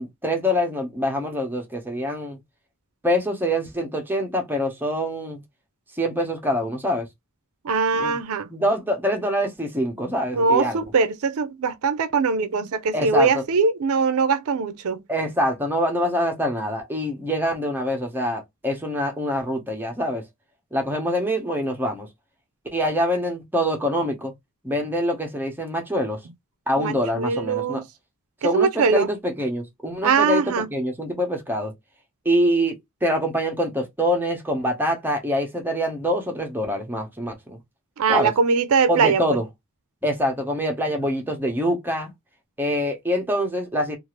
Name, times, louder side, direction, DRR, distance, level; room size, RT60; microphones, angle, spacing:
voice 1, 0.0-2.4 3.0-5.4 6.0-7.1 8.0-8.2 8.5-10.8 12.9-13.4 15.1-20.2 20.7-22.1 22.7-24.3 24.6-26.2 26.7-27.8 28.4-31.7 32.2-37.6 38.1-38.3 38.9-39.4 40.0-42.1 42.6-44.0, equal, 10° right, 0.8 m, -25 dB
voice 2, 7.6-8.5 10.3-15.0 26.8-27.8 28.5-29.1 30.0-30.7 38.0-39.4, right 5 dB, 65° right, 0.4 m, -21 dB
2.6 x 2.4 x 3.0 m
head